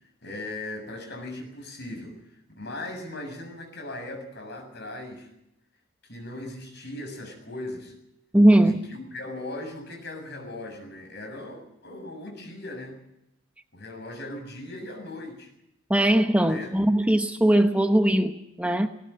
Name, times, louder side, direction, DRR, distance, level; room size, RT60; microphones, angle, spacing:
voice 1, 0.2-2.2 2.6-5.3 6.0-7.9 8.6-13.0 13.7-15.5 16.4-16.7, left 1 dB, 50° left, 7.1 m, -38 dB
voice 2, 8.3-8.8 15.9-18.9, right 1 dB, 5° right, 0.8 m, -20 dB
18.5 x 18.5 x 9.0 m
head